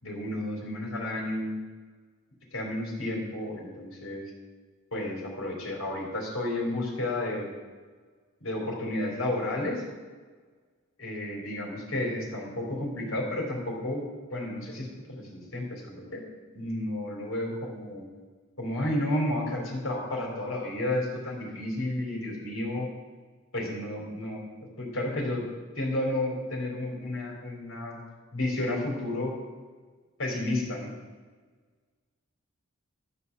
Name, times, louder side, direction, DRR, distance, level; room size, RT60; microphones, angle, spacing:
voice 1, 0.0-1.6 2.5-4.3 4.9-7.5 8.4-9.8 11.0-14.0 14.3-16.2 16.5-18.1 18.6-22.9 23.5-24.4 24.8-25.4 25.8-28.0 28.3-29.3 30.2-30.9, left 1 dB, 70° left, -1 dB, 3.8 m, -32 dB
12.5 x 7.0 x 7.4 m, 1.4 s
head